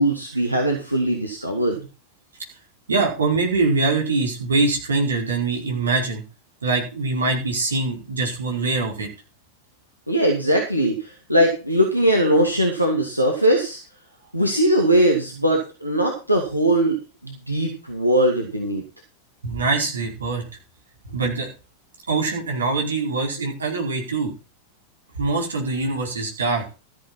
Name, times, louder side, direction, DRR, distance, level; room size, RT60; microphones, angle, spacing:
voice 1, 0.0-1.8 10.1-13.8 14.3-17.0 17.2-18.8, right 1 dB, 90° right, 1 dB, 2.4 m, -20 dB
voice 2, 2.9-6.2 6.6-9.1 19.4-20.4 21.1-21.5 22.1-24.3 25.2-26.6, right 3 dB, 70° right, 1 dB, 4.8 m, -23 dB
14.0 x 10.5 x 4.3 m, 0.32 s
figure-of-eight pair, 90°, 0 cm